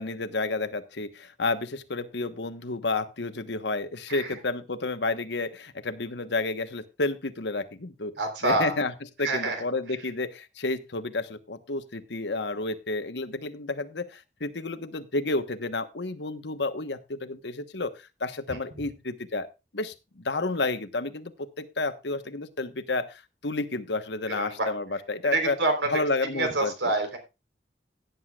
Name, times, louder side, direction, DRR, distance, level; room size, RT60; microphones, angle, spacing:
voice 1, 0.0-8.1 8.4-8.9 9.2-19.5 19.7-25.6 25.8-26.7, left 3 dB, 75° left, 10 dB, 1.2 m, -31 dB
voice 2, 8.2-8.7 9.2-9.6 18.5-18.6 24.3-24.7 25.3-25.9 26.3-27.2, right 2 dB, 90° right, 6 dB, 3.8 m, -27 dB
17.5 x 9.6 x 2.4 m, 0.26 s
head